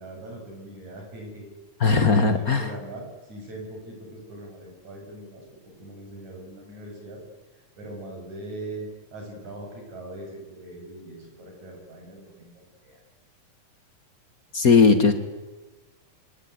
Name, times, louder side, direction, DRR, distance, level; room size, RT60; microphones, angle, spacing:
voice 1, 0.0-1.5 2.1-7.2 7.5-13.0, right 1 dB, 55° right, 1 dB, 8.4 m, -41 dB
voice 2, 1.8-2.7 14.5-15.1, left 4 dB, 40° left, 9 dB, 1.3 m, -18 dB
24.5 x 19.0 x 9.6 m, 1.2 s
omnidirectional pair, 3.9 m